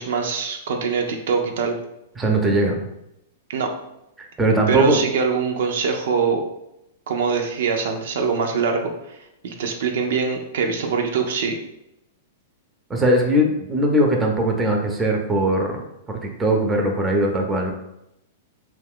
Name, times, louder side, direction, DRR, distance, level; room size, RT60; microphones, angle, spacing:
voice 1, 0.0-1.8 3.5-3.7 4.7-6.4 7.1-11.6, right 5 dB, 70° right, 3 dB, 0.4 m, -23 dB
voice 2, 2.2-2.8 4.2-5.0 12.9-15.8 16.2-17.7, right 1 dB, 15° right, 1 dB, 0.6 m, -20 dB
2.6 x 2.3 x 3.6 m, 0.84 s
hypercardioid pair, 120°, 0 cm